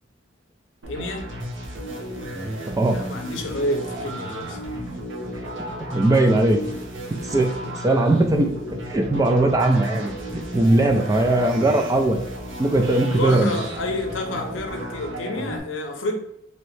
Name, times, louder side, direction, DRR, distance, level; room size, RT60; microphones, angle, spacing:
sound 1, 0.8-15.6, right 1 dB, 70° right, 0.8 m, -33 dB
voice 1, 0.9-1.3 2.9-4.9 7.6-7.7 13.2-16.2, left 1 dB, 70° left, 4 dB, 0.6 m, -29 dB
voice 2, 2.4-3.0 5.8-6.6 7.3-7.5 7.8-10.1 10.5-12.2 12.6-13.5, right 2 dB, 20° right, 4 dB, 0.3 m, -19 dB
3.1 x 2.7 x 3.1 m, 0.78 s
head